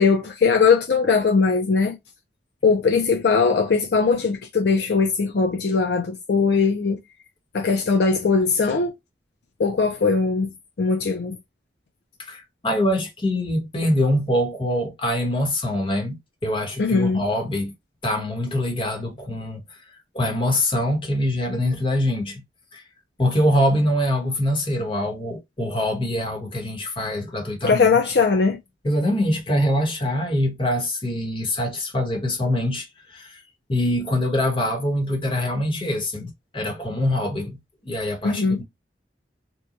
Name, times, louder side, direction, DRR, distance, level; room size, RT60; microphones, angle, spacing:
voice 1, 0.0-2.0 2.6-7.0 7.5-8.9 9.6-10.5 10.8-11.4 16.8-17.2 27.6-28.6 38.2-38.6, left 4 dB, 65° left, 0.5 m, -20 dB
voice 2, 12.2-17.7 18.0-19.6 20.1-22.4 22.7-22.8 23.2-28.0 28.8-33.4 33.7-37.6 37.8-38.6, left 1 dB, 30° left, 1.1 m, -24 dB
3.0 x 2.3 x 2.4 m
head